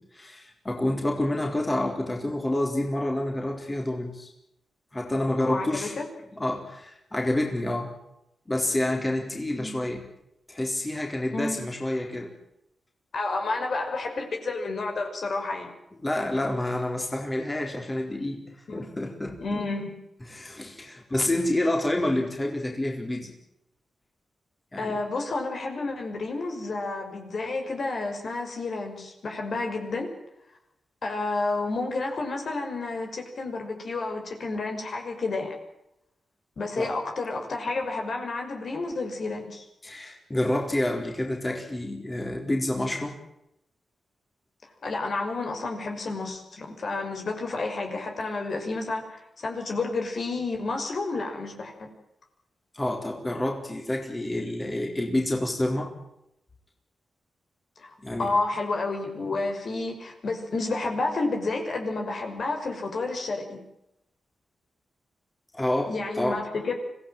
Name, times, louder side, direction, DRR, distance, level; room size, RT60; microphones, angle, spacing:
voice 1, 0.0-4.3 4.9-6.0 6.4-8.0 8.5-10.0 10.5-12.3 16.0-18.4 18.7-19.6 20.3-23.3 24.7-25.0 36.8-36.9 39.8-43.2 52.7-55.9 58.0-58.3 65.5-66.4, left 1 dB, 20° left, 1 dB, 4.1 m, -28 dB
voice 2, 5.4-6.1 9.5-9.7 11.3-11.6 13.1-15.7 18.7-18.9 19.4-20.0 24.8-30.1 31.0-35.5 36.6-39.7 44.8-51.9 57.8-63.6 65.9-66.7, left 3 dB, 55° left, 3 dB, 5.7 m, -30 dB
25.5 x 17.0 x 9.1 m, 0.84 s
wide cardioid pair, 100°, 0 cm